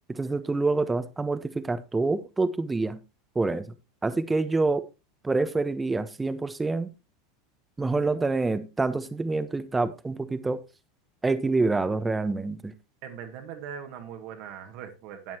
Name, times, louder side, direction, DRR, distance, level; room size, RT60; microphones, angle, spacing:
voice 1, 0.1-3.0 3.3-3.7 4.0-4.8 5.2-6.9 7.8-10.6 11.2-12.7, right 3 dB, 15° right, 1.1 m, -27 dB
voice 2, 13.0-15.4, right 8 dB, 55° right, 1.8 m, -40 dB
13.0 x 9.2 x 3.0 m
figure-of-eight pair, 80°, 0 cm